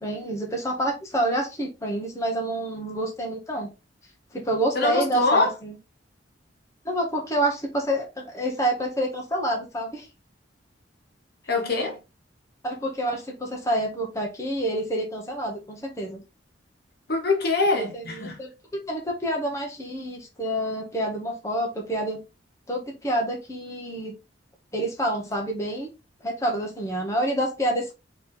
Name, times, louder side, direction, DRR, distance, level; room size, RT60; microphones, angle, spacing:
voice 1, 0.0-3.7 4.3-5.7 6.8-10.1 12.6-16.2 17.8-22.2 22.7-24.2 24.7-25.9 26.2-27.9, right 1 dB, 15° left, 1.0 m, -28 dB
voice 2, 4.7-5.5 11.5-12.0 17.1-18.4, left 3 dB, 55° left, 1.4 m, -23 dB
4.3 x 3.1 x 3.9 m
head